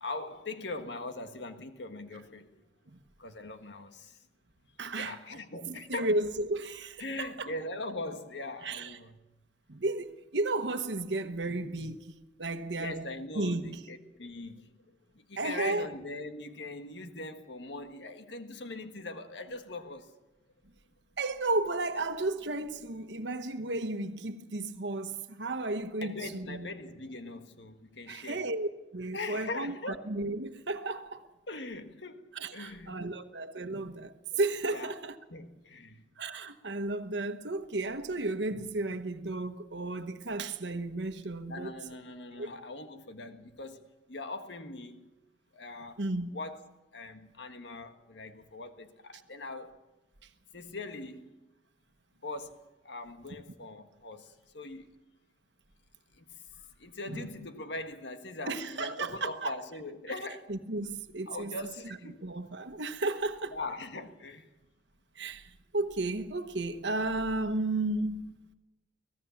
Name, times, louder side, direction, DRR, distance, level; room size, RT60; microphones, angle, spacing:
voice 1, 0.0-2.5 3.2-4.2 5.0-6.1 7.0-9.2 12.8-14.7 15.1-20.1 26.0-28.4 29.1-30.1 31.5-33.0 34.3-34.4 34.7-34.9 35.3-36.0 41.5-45.1 45.5-46.0 46.3-46.7 46.9-49.8 50.5-51.3 52.2-54.9 56.1-60.5 61.3-62.2 63.5-64.5, left 2 dB, 80° left, 1.6 m, -41 dB
voice 2, 4.8-5.2 5.7-7.5 8.6-9.0 9.7-12.0 12.4-13.1 13.3-13.8 15.4-15.9 21.2-26.7 28.1-28.7 28.9-31.2 32.3-35.2 36.2-41.7 42.4-42.5 46.0-46.3 57.1-57.3 58.5-59.6 60.5-61.6 62.2-63.5 65.2-68.3, right 2 dB, 85° right, 1.2 m, -33 dB
25.0 x 17.5 x 7.2 m
head